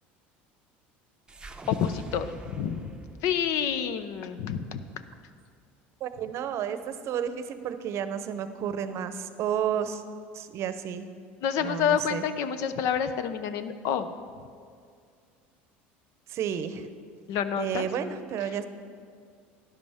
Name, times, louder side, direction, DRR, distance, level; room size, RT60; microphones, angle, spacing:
Mouth Lightening, 1.3-5.6, right 2 dB, 15° right, 0.7 m, -46 dB
voice 1, 1.7-2.9 3.2-4.8 11.4-14.1 17.3-17.9, left 8 dB, 65° left, 11 dB, 0.7 m, -28 dB
voice 2, 6.0-10.0 10.3-11.1 11.6-12.2 16.3-16.9 17.6-18.7, right 8 dB, 55° right, 11 dB, 0.7 m, -31 dB
12.5 x 10.5 x 3.5 m, 2.2 s
supercardioid pair, 95°, 6 cm